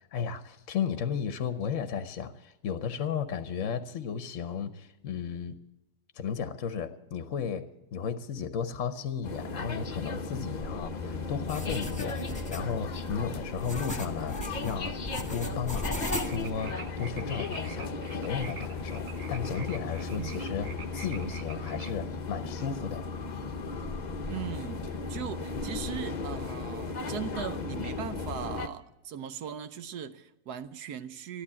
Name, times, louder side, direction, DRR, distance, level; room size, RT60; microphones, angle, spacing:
voice 1, 0.1-5.5 6.1-14.4 14.6-14.9 15.3-16.0 16.3-23.0, left 7 dB, 55° left, 1.0 m, -34 dB
sound 1, 9.2-28.7, left 4 dB, 40° left, 0.7 m, -36 dB
sound 2, 11.5-16.7, left 1 dB, 5° left, 1.3 m, -38 dB
sound 3, 16.0-22.0, right 6 dB, 50° right, 1.0 m, -47 dB
voice 2, 24.3-31.4, right 8 dB, 75° right, 1.2 m, -39 dB
13.5 x 11.5 x 8.5 m
omnidirectional pair, 1.8 m